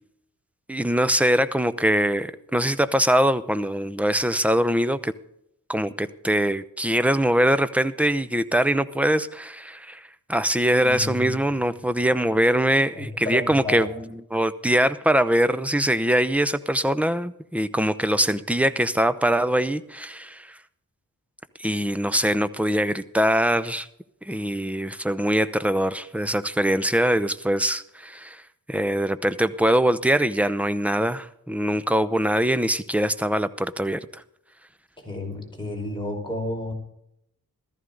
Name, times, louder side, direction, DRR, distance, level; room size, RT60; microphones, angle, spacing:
voice 1, 0.7-5.1 5.7-20.6 21.6-23.9 24.3-28.4 28.7-34.1, right 1 dB, 5° right, 13 dB, 0.7 m, -23 dB
voice 2, 10.8-11.3 12.9-13.9 35.0-36.7, left 2 dB, 15° left, -1 dB, 5.1 m, -31 dB
14.5 x 14.0 x 3.9 m, 0.77 s
wide cardioid pair, 90°, 36 cm